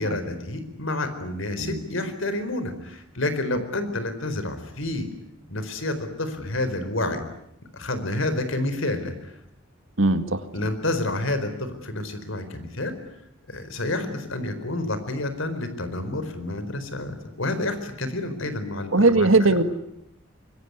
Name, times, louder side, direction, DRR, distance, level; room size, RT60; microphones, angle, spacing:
voice 1, 0.0-5.1 5.5-7.2 7.7-9.3 10.5-13.0 13.5-19.3, left 2 dB, 65° left, 10 dB, 4.4 m, -29 dB
voice 2, 10.0-10.4 18.9-19.6, right 2 dB, 65° right, 10 dB, 2.1 m, -19 dB
25.0 x 23.0 x 9.7 m, 0.78 s
head